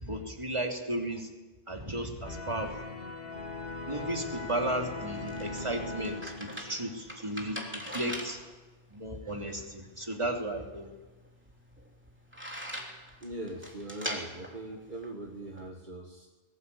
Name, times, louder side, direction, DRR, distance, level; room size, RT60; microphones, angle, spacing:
voice 1, 0.0-1.3 1.7-2.7 3.9-8.4 8.9-10.9, right 1 dB, 30° right, 2 dB, 3.1 m, -34 dB
sound 1, 2.2-7.1, left 3 dB, 65° left, 2.0 m, -40 dB
sound 2, 4.8-15.7, equal, 10° right, 3.2 m, -43 dB
voice 2, 13.2-16.3, right 1 dB, 50° right, 0 dB, 2.0 m, -41 dB
21.0 x 18.5 x 8.5 m, 1.2 s
omnidirectional pair, 1.0 m